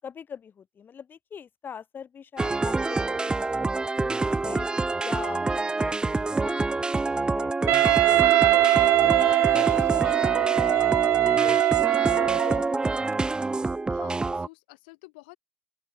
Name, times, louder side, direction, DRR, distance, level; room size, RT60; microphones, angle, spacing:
voice 1, 0.0-3.7 4.0-4.7 5.0-11.6 11.9-12.9, left 7 dB, 40° left, 8.0 m, -42 dB
sound 1, 2.4-14.5, right 3 dB, 15° right, 0.8 m, -27 dB
Wind instrument woodwind instrument, 7.7-12.7, right 17 dB, 60° right, 0.5 m, -21 dB
voice 2, 13.5-15.4, left 26 dB, 75° left, 1.7 m, -49 dB
open air
hypercardioid pair, 65°, 5 cm